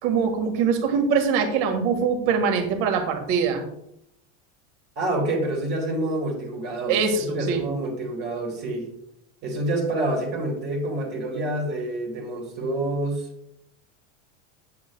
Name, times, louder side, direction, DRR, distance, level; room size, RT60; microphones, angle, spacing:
voice 1, 0.0-3.7 6.9-7.6, right 6 dB, 55° right, 3 dB, 1.6 m, -23 dB
voice 2, 4.9-8.9 9.4-13.3, right 1 dB, 25° right, 0 dB, 1.5 m, -27 dB
8.4 x 7.8 x 2.2 m, 0.76 s
supercardioid pair, 170°, 37 cm